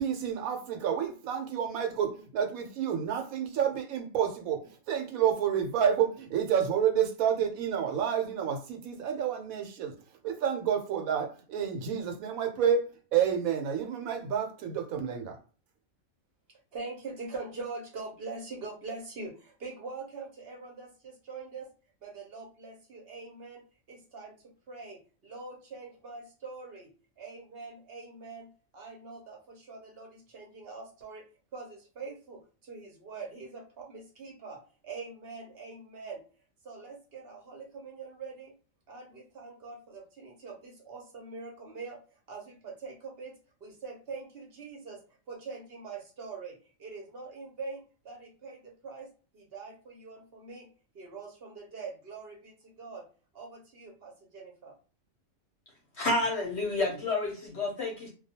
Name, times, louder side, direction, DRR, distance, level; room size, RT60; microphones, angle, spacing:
voice 1, 0.0-9.9 10.2-15.4, right 8 dB, 85° right, 1.0 m, -29 dB
voice 2, 16.5-21.7 22.0-23.6 23.9-24.3 24.7-26.9 27.2-31.2 31.5-36.2 36.6-38.5 38.9-43.3 43.6-45.0 45.3-49.1 49.3-50.7 50.9-53.0 53.3-54.7, right 4 dB, 55° right, 0.8 m, -43 dB
voice 3, 56.0-58.1, left 2 dB, 60° left, 0.8 m, -30 dB
2.3 x 2.2 x 2.7 m
omnidirectional pair, 1.4 m